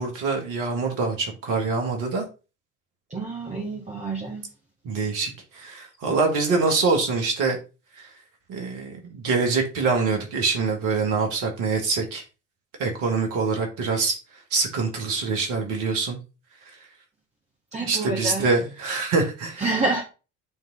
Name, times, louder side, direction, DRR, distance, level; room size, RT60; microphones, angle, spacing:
voice 1, 0.0-2.3 4.8-7.6 8.0-8.1 8.5-12.2 12.8-14.2 14.5-16.2 17.8-19.6, right 4 dB, 60° right, 3 dB, 2.0 m, -25 dB
voice 2, 3.1-4.4 17.7-18.5 19.6-20.0, right 3 dB, 20° right, -2 dB, 1.7 m, -28 dB
9.2 x 3.7 x 3.8 m, 0.31 s
figure-of-eight pair, 55°, 36 cm